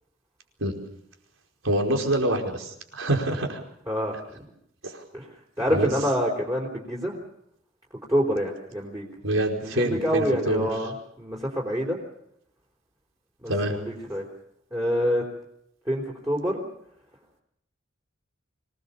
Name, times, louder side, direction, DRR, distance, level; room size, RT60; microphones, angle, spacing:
voice 1, 1.6-3.6 4.8-5.0 5.7-5.9 9.2-10.7 13.5-13.8, right 1 dB, 80° right, 3 dB, 4.9 m, -26 dB
voice 2, 5.6-7.1 8.1-9.0 9.6-12.0 13.4-14.3 14.7-15.2 15.9-16.6, equal, 15° right, 0 dB, 3.9 m, -26 dB
26.0 x 19.0 x 7.0 m, 0.75 s
head